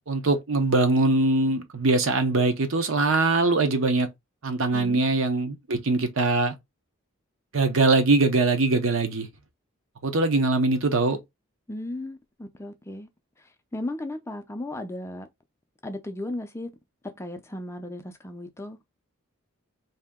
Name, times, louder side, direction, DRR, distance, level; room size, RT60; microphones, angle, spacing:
voice 1, 0.0-4.1 4.4-6.5 7.5-9.3 10.0-11.2, right 3 dB, 65° right, 0.7 m, -22 dB
voice 2, 11.7-13.1 13.7-15.3 15.8-16.7 17.0-18.8, left 1 dB, 10° left, 0.4 m, -35 dB
2.8 x 2.7 x 3.5 m
head